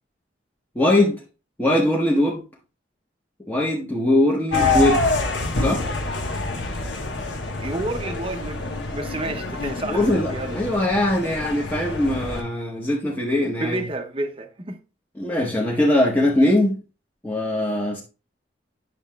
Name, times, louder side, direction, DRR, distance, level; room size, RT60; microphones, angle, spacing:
voice 1, 0.7-1.2 1.6-2.4 3.5-5.0 5.6-5.8 9.9-13.8 15.2-16.8 17.2-18.0, left 1 dB, 10° left, 0.9 m, -21 dB
sound 1, 4.5-12.4, left 3 dB, 80° left, 1.2 m, -26 dB
voice 2, 7.6-8.7 8.9-10.6 13.6-14.8, right 2 dB, 30° right, 0.7 m, -30 dB
9.3 x 6.5 x 2.3 m
head